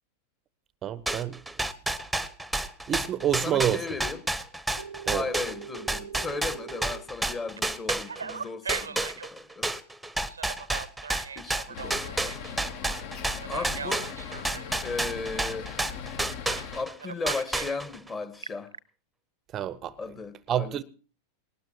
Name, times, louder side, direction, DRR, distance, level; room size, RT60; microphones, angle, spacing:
voice 1, 0.8-1.4 2.9-3.8 5.1-5.3 19.5-20.0 20.5-20.8, right 11 dB, 30° right, 0.6 m, -28 dB
sound 1, 1.1-8.4 8.7-16.9 17.3-18.1, right 2 dB, ahead, 0.9 m, -30 dB
voice 2, 3.4-4.3 5.1-9.7 11.3-12.3 13.5-14.1 14.8-15.7 16.7-18.7 20.0-20.8, left 4 dB, 20° left, 1.4 m, -36 dB
Telephone, 4.8-7.0 7.6-9.3 10.3-12.5 13.4-14.7 16.5-16.7 17.0-17.8 18.2-18.8, right 6 dB, 75° right, 0.6 m, -39 dB
sound 2, 11.7-16.8, left 7 dB, 50° left, 1.1 m, -39 dB
19.5 x 19.0 x 2.9 m
figure-of-eight pair, 90°, 0 cm